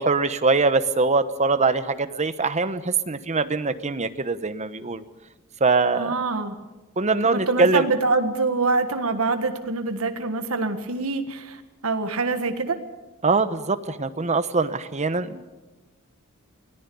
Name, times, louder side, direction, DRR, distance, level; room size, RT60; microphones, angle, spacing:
voice 1, 0.0-5.0 5.6-6.1 7.0-7.8 13.2-15.4, right 3 dB, 35° right, 12 dB, 1.0 m, -22 dB
voice 2, 5.9-6.6 7.2-12.8, right 3 dB, 75° right, 7 dB, 1.7 m, -25 dB
24.0 x 18.0 x 7.1 m, 1.1 s
head